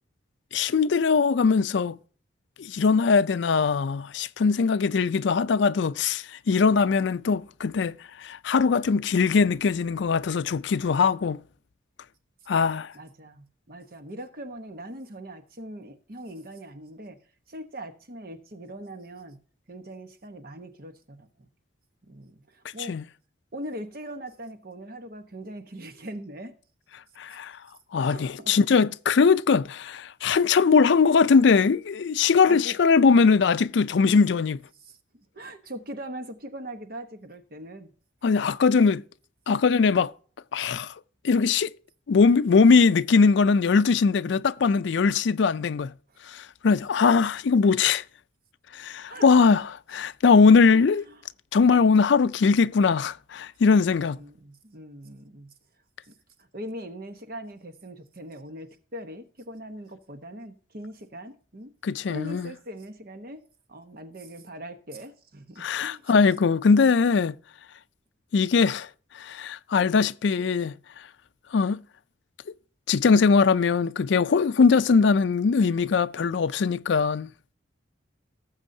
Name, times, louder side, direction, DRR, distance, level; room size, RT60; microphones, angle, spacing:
voice 1, 0.5-2.0 2.6-11.4 12.5-12.9 22.9-23.0 27.2-27.5 27.9-34.6 38.2-39.0 39.5-40.1 40.5-40.9 41.2-41.7 42.1-45.9 46.3-48.0 48.7-49.6 49.9-51.0 51.5-54.2 61.8-62.5 65.6-67.3 68.3-68.9 69.2-70.7 71.5-71.8 72.9-77.3, left 5 dB, 70° left, 0.4 m, -21 dB
voice 2, 12.9-17.2 17.5-19.4 19.7-21.5 22.0-23.0 23.5-26.6 28.1-28.6 32.5-32.8 33.9-34.3 34.8-37.9 46.1-46.2 49.1-49.6 50.7-51.2 54.0-55.5 56.0-61.7 62.1-63.4 63.7-66.1, right 1 dB, 50° right, 1.1 m, -41 dB
18.5 x 7.2 x 2.7 m
head